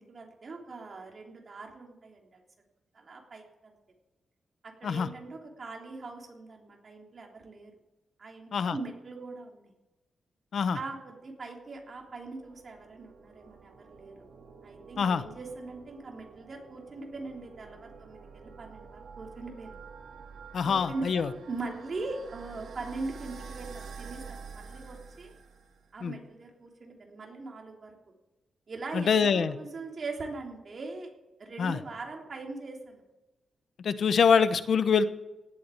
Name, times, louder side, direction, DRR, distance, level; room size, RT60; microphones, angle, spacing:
voice 1, 0.0-2.4 2.9-3.8 4.6-7.7 8.2-9.7 10.7-14.1 14.6-19.8 20.6-25.3 25.9-27.9 28.7-31.1 31.4-33.0, right 3 dB, 45° right, 1 dB, 3.3 m, -41 dB
sound 1, 11.8-26.0, right 5 dB, 85° right, 2.5 m, -48 dB
voice 2, 20.5-21.3 26.0-26.1 28.9-29.5 31.6-31.8 33.8-35.0, left 6 dB, 65° left, 12 dB, 1.0 m, -24 dB
18.0 x 8.5 x 8.4 m, 1.1 s
wide cardioid pair, 130°, 0 cm